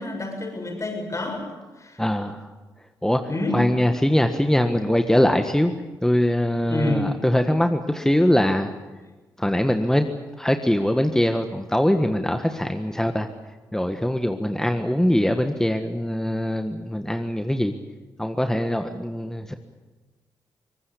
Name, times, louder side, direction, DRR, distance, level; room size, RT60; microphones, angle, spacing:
voice 1, 0.0-1.5 1.8-2.0 3.3-3.6 6.7-7.1, left 2 dB, 35° left, 4 dB, 7.3 m, -28 dB
voice 2, 2.0-2.4 3.0-3.2 3.5-5.7 6.0-8.7 9.4-10.1 10.4-13.3 13.7-17.7 18.2-19.5, left 1 dB, 5° left, 7 dB, 1.6 m, -22 dB
23.0 x 19.5 x 8.6 m, 1.2 s
supercardioid pair, 50°, 9 cm